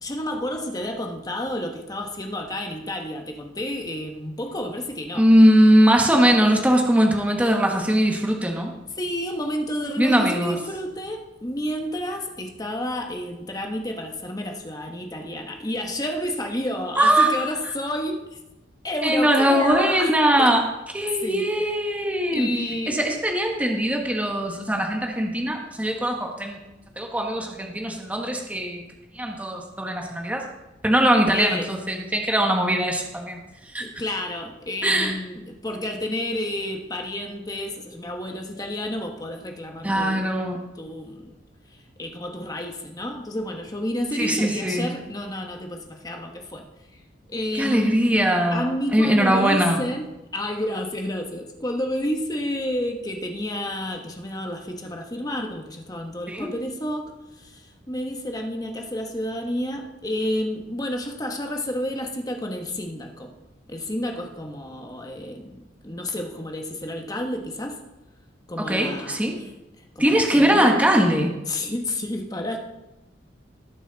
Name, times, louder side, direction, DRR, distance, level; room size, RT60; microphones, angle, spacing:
voice 1, 0.0-5.3 6.2-6.6 9.0-18.2 18.8-20.1 20.4-20.6 21.2-21.5 22.3-23.0 31.3-31.7 33.8-40.3 40.7-41.3 42.0-46.6 47.3-48.0 48.5-63.3 63.7-67.8 68.5-69.2 69.9-70.8 71.5-72.6, left 1 dB, 20° left, 3 dB, 1.3 m, -30 dB
voice 2, 5.1-8.7 10.0-10.6 17.0-17.3 19.0-20.6 20.9-22.5 22.9-26.6 27.0-28.8 29.1-30.4 30.8-33.4 33.7-33.8 34.8-35.2 39.8-40.7 44.1-44.9 47.5-49.8 56.3-56.5 68.6-69.4 70.0-71.3, right 1 dB, 10° right, 1 dB, 1.3 m, -20 dB
18.0 x 6.1 x 4.1 m, 0.98 s
head